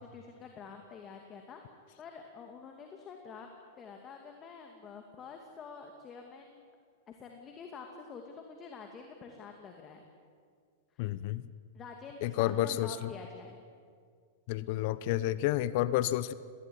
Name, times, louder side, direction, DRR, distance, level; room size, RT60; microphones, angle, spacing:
voice 1, 0.0-1.6 2.0-3.5 3.8-6.6 7.1-10.0 10.9-11.1 11.7-13.6, left 5 dB, 30° left, 3 dB, 2.4 m, -47 dB
voice 2, 11.0-11.4 12.2-13.1 14.5-16.3, left 14 dB, 55° left, 17 dB, 0.8 m, -30 dB
19.5 x 18.5 x 10.0 m, 2.1 s
hypercardioid pair, 115°, 0 cm